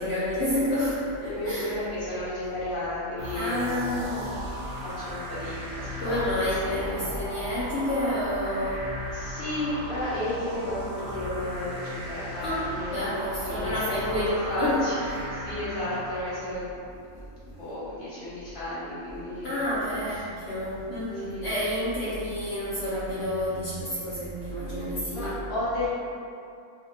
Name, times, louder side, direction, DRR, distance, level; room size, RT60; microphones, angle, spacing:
voice 1, 0.0-1.7 3.3-4.4 6.0-8.9 12.4-14.8 19.4-25.4, left 1 dB, 60° left, -10 dB, 0.8 m, -29 dB
voice 2, 1.3-3.8 4.8-7.0 9.1-16.9 17.4-19.6 21.1-21.5 25.1-25.9, left 1 dB, 40° left, -10 dB, 1.2 m, -33 dB
sound 1, 3.2-16.7, equal, 75° right, 0.4 m, -36 dB
2.7 x 2.2 x 3.6 m, 2.5 s
omnidirectional pair, 1.4 m